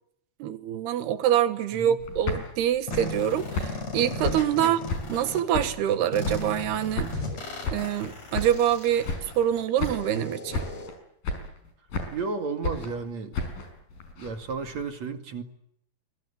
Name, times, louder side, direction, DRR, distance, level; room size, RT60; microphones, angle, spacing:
voice 1, 0.4-4.8 5.1-7.2 7.7-9.1 9.4-10.7, right 10 dB, 75° right, 11 dB, 3.7 m, -25 dB
sound 1, 2.0-5.3 5.5-6.7 7.0-8.8 9.0-9.5 9.8-10.3 10.5-11.0 11.2-12.3 12.6-14.8, left 3 dB, 60° left, 6.8 m, -34 dB
sound 2, 2.9-5.4 6.1-10.9, left 2 dB, 40° left, 7.2 m, -36 dB
voice 2, 12.1-13.4 14.1-15.4, right 4 dB, 50° right, 7 dB, 3.2 m, -33 dB
26.5 x 23.0 x 8.4 m, 0.74 s
omnidirectional pair, 4.7 m